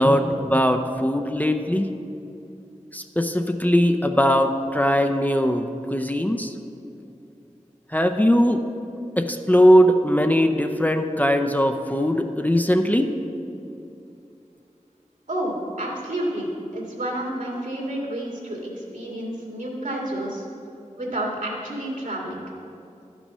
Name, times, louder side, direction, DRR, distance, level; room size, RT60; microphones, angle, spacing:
voice 1, 0.0-1.9 2.9-6.5 7.9-8.6 9.2-13.2, equal, 10° left, 6 dB, 0.5 m, -20 dB
voice 2, 15.3-20.5 21.0-22.4, right 1 dB, 80° right, -3 dB, 2.2 m, -30 dB
11.5 x 6.1 x 5.5 m, 2.6 s
wide cardioid pair, 55°, 13 cm